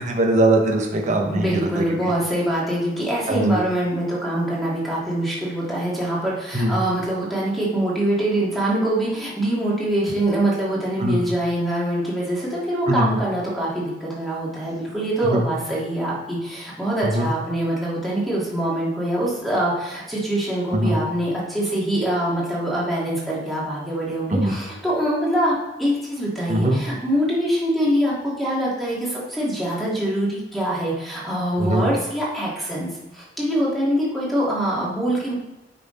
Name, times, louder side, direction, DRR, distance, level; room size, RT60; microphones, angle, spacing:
voice 1, 0.0-1.5 1.8-1.9 3.3-3.6 6.5-6.7 11.0-11.2 12.9-13.1 15.3-15.4 17.0-17.3 20.7-20.9 24.3-24.6 26.5-26.8 31.6-31.9, right 1 dB, 45° right, 2 dB, 1.1 m, -21 dB
voice 2, 1.3-35.3, right 1 dB, ahead, -6 dB, 2.5 m, -24 dB
9.0 x 5.9 x 4.1 m, 1.0 s
head